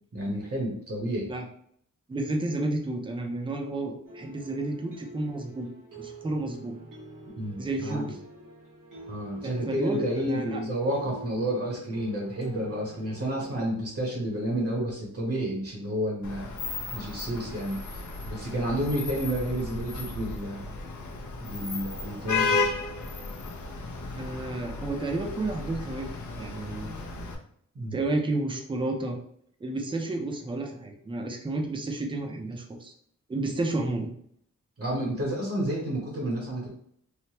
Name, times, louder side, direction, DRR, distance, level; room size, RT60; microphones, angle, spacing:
voice 1, 0.1-1.3 7.3-8.1 9.1-16.5 16.9-17.8 18.2-20.7 21.4-22.6 27.7-28.0 34.8-36.7, right 1 dB, 50° right, -2 dB, 0.9 m, -30 dB
voice 2, 2.1-5.7 6.0-6.8 7.6-8.1 9.4-10.6 24.2-26.1 26.4-27.0 27.9-29.2 29.6-32.9 33.3-34.1, right 2 dB, 15° right, 2 dB, 0.4 m, -31 dB
sound 1, 4.0-13.5, right 1 dB, 90° right, 1.1 m, -46 dB
Vehicle horn car horn honking / Traffic noise roadway noise, 16.2-27.3, left 3 dB, 70° left, 0.6 m, -34 dB
3.2 x 2.0 x 2.8 m, 0.66 s
wide cardioid pair, 130°, 31 cm